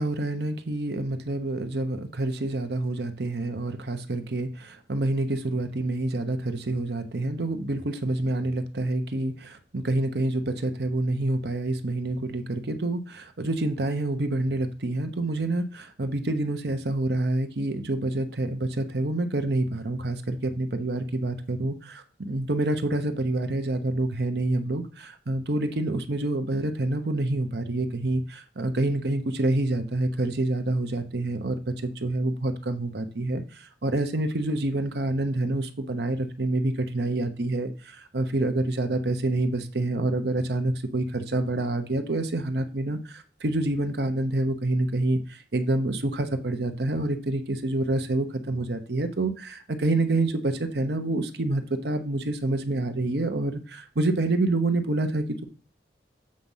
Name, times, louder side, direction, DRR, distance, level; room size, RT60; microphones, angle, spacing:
voice 1, 0.0-31.6 31.8-33.4 33.8-55.4, right 2 dB, 65° right, 8 dB, 0.9 m, -27 dB
7.6 x 4.2 x 5.5 m, 0.36 s
head